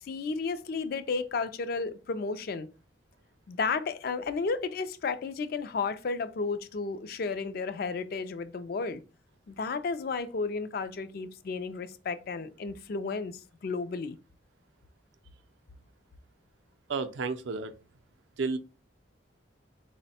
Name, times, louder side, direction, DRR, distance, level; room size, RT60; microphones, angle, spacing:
voice 1, 0.0-2.7 3.5-9.0 9.5-14.2, left 4 dB, 50° left, 0.3 m, -33 dB
voice 2, 16.9-17.7 18.4-18.6, right 4 dB, 70° right, 0.4 m, -31 dB
4.1 x 2.1 x 4.1 m
head